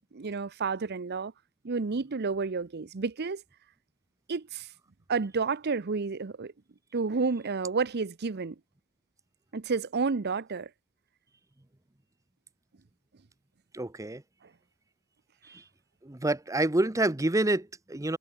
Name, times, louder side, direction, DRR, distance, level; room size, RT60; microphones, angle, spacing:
voice 1, 0.1-1.3 1.6-3.4 4.3-4.7 5.1-6.5 6.9-8.6 9.5-10.7, right 4 dB, 45° right, 0.6 m, -30 dB
voice 2, 13.7-14.2 15.4-15.6 16.0-18.2, right 2 dB, 15° right, 0.8 m, -28 dB
head